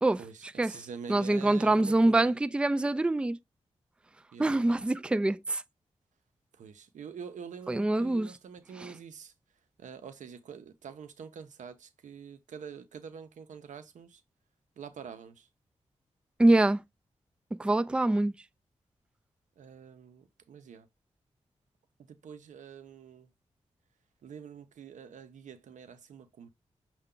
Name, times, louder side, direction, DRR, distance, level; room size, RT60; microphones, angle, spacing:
voice 1, 0.2-2.4 4.3-4.8 6.5-9.3 9.8-14.2 14.8-15.5 19.6-20.9 22.0-23.3 24.2-26.5, right 7 dB, 80° right, 0.7 m, -46 dB
voice 2, 1.1-3.4 4.4-5.6 7.7-8.3 16.4-16.8 17.6-18.4, right 2 dB, 10° right, 0.3 m, -25 dB
5.5 x 2.3 x 3.7 m
cardioid pair, 50°, 12 cm